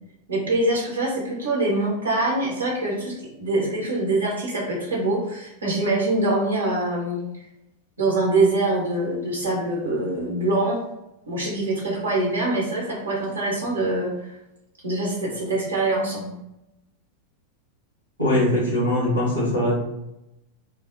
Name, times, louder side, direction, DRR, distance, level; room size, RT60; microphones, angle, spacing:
voice 1, 0.3-7.5 8.0-10.8 11.3-14.4 14.8-16.3, right 2 dB, 70° right, -3 dB, 0.8 m, -24 dB
voice 2, 18.2-19.8, left 1 dB, 85° left, -8 dB, 1.0 m, -21 dB
2.8 x 2.0 x 2.6 m, 0.88 s
figure-of-eight pair, 90°, 0 cm